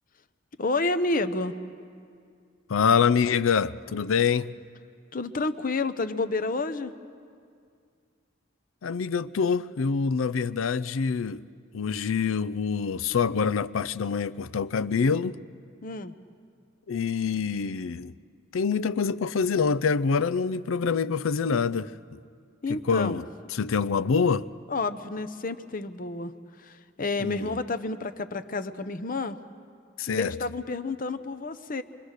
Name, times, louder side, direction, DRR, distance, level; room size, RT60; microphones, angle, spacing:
voice 1, 0.6-1.6 5.1-6.9 15.8-16.2 22.6-23.2 24.7-29.4 30.1-31.8, left 3 dB, 45° left, 0.8 m, -30 dB
voice 2, 2.7-4.6 8.8-11.4 11.7-15.4 16.9-18.1 18.5-22.2 22.7-23.2 23.5-24.5 27.2-27.5 30.0-30.3, left 5 dB, 85° left, 0.5 m, -25 dB
26.0 x 23.0 x 6.5 m
head